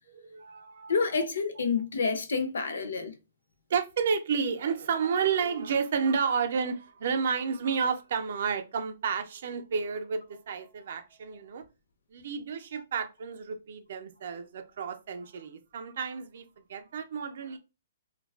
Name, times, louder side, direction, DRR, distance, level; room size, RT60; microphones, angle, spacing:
voice 1, 0.1-1.0 3.7-11.6 12.1-17.6, right 6 dB, 50° right, 0.4 m, -31 dB
voice 2, 0.9-3.2, left 5 dB, 85° left, 0.5 m, -28 dB
2.4 x 2.2 x 2.3 m
hypercardioid pair, 170°, 0 cm